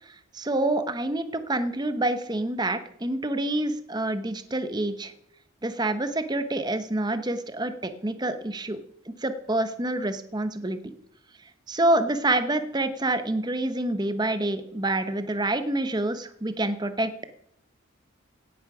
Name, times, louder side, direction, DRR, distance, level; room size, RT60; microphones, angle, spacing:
voice 1, 0.0-5.1 5.6-8.8 9.1-10.9 11.7-17.1, right 1 dB, 20° right, 10 dB, 0.9 m, -27 dB
16.5 x 8.5 x 6.0 m, 0.73 s
head